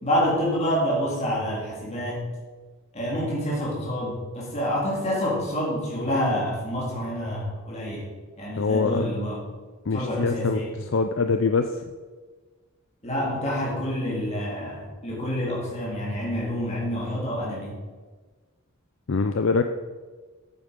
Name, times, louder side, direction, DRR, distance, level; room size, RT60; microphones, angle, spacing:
voice 1, 0.0-2.2 2.9-8.1 8.4-9.4 9.9-10.8 13.0-17.8, equal, 30° left, -5 dB, 3.6 m, -27 dB
voice 2, 8.6-9.1 9.9-10.6 10.9-11.7 19.1-19.6, left 4 dB, 60° left, 7 dB, 0.5 m, -23 dB
8.9 x 8.7 x 5.2 m, 1.4 s
head